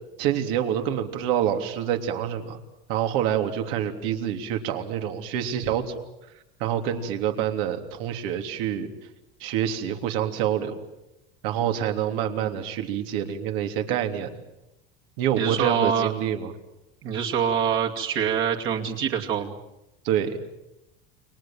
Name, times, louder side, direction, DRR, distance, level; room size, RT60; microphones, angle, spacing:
voice 1, 0.2-2.6 2.9-5.9 6.6-8.9 9.4-10.8 11.4-14.3 15.2-16.5 20.0-20.4, right 10 dB, 75° right, 5 dB, 3.3 m, -27 dB
voice 2, 15.4-16.1 17.0-19.6, right 7 dB, 45° right, 1 dB, 2.6 m, -25 dB
29.5 x 24.5 x 7.8 m, 0.92 s
supercardioid pair, 140°, 30 cm